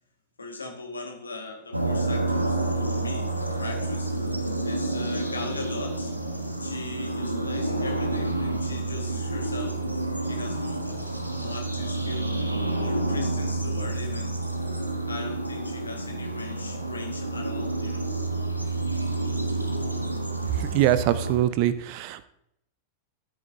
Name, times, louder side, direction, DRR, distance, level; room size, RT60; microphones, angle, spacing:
voice 1, 0.4-4.2 4.6-6.1 6.6-9.8 10.2-10.9 11.3-12.4 12.8-14.4 15.1-18.1, left 3 dB, 75° left, 4 dB, 1.9 m, -39 dB
sound 1, 1.7-21.4, right 2 dB, 90° right, 1.3 m, -29 dB
voice 2, 20.6-22.2, right 13 dB, 45° right, 14 dB, 0.5 m, -23 dB
13.5 x 8.8 x 2.8 m, 0.76 s
figure-of-eight pair, 90°, 0 cm